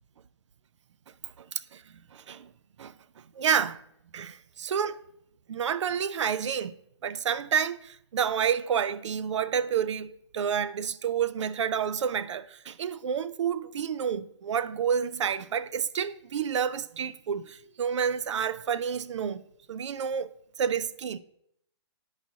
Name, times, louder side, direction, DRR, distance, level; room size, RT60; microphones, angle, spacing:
voice 1, 2.1-2.5 2.8-2.9 3.4-3.8 4.1-5.0 5.5-6.7 7.0-19.4 19.7-21.2, right 7 dB, 85° right, 0.4 m, -29 dB
10.0 x 4.8 x 2.6 m
hypercardioid pair, 160°, 15 cm